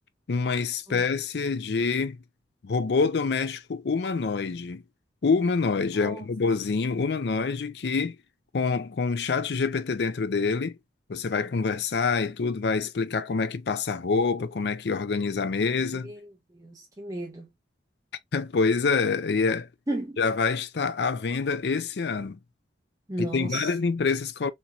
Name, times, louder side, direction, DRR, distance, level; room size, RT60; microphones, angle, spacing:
voice 1, 0.3-2.2 2.6-4.8 5.2-8.2 8.5-10.8 11.1-16.1 18.3-19.7 20.2-22.4 23.2-24.5, left 4 dB, 65° left, 0.5 m, -26 dB
voice 2, 5.9-6.2 16.0-16.3 16.5-17.5 19.9-20.2 23.1-23.7, right 1 dB, 20° right, 0.9 m, -34 dB
4.3 x 3.0 x 2.4 m
head